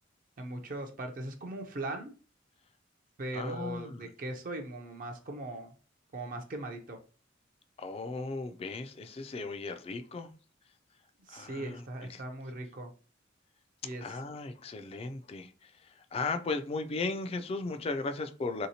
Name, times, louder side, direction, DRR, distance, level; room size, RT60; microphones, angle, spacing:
voice 1, 0.4-2.1 3.2-5.7 6.1-7.0 11.3-12.9 13.8-14.0, right 1 dB, 45° right, 3 dB, 0.5 m, -39 dB
voice 2, 3.3-4.0 7.8-10.3 11.3-12.2 14.0-18.7, left 3 dB, 30° left, 8 dB, 0.3 m, -36 dB
3.5 x 2.8 x 2.7 m, 0.37 s
head